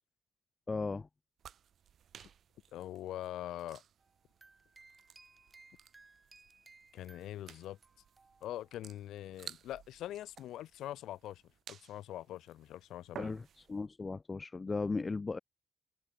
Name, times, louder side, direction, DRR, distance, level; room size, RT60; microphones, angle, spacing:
voice 1, 0.7-1.1 13.2-15.4, left 4 dB, 25° left, 0.4 m, -36 dB
sound 1, 1.4-13.8, right 9 dB, 60° right, 4.7 m, -55 dB
voice 2, 2.7-3.8 6.9-7.8 8.4-11.4 11.7-13.3, left 13 dB, 80° left, 1.3 m, -43 dB
sound 2, 4.0-8.9, right 3 dB, 25° right, 3.1 m, -62 dB
cardioid pair, 90°, 0 cm